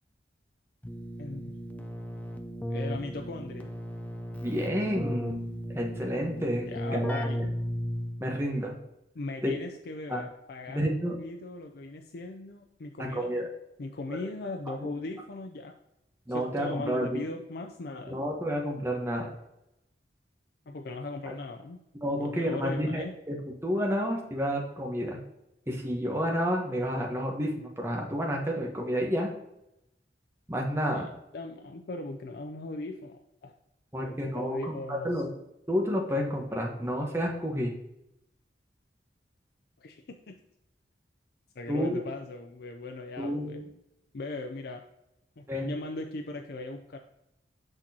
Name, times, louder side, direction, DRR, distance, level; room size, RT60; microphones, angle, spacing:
Keyboard (musical), 0.8-8.4, equal, 10° left, 0.5 m, -35 dB
voice 1, 1.2-1.6 2.7-3.7 6.6-7.4 9.1-13.5 13.8-15.7 16.3-18.2 20.7-21.8 22.1-23.1 30.9-31.1 31.3-33.5 33.9-35.2 39.8-40.4 41.6-43.6 44.1-44.8 45.4-47.0, left 2 dB, 60° left, 3 dB, 0.5 m, -39 dB
voice 2, 4.4-7.2 8.2-8.7 9.4-9.5 10.1-10.2 10.7-11.2 13.1-13.5 14.1-14.2 14.7-14.9 16.3-17.2 18.1-19.3 21.3-21.4 22.0-23.4 23.6-25.2 25.7-29.3 30.5-31.1 33.9-35.3 35.7-37.8 41.7-42.0 43.2-43.6 45.5-45.7, equal, 15° right, 0 dB, 1.1 m, -30 dB
6.3 x 6.0 x 2.8 m, 0.85 s
head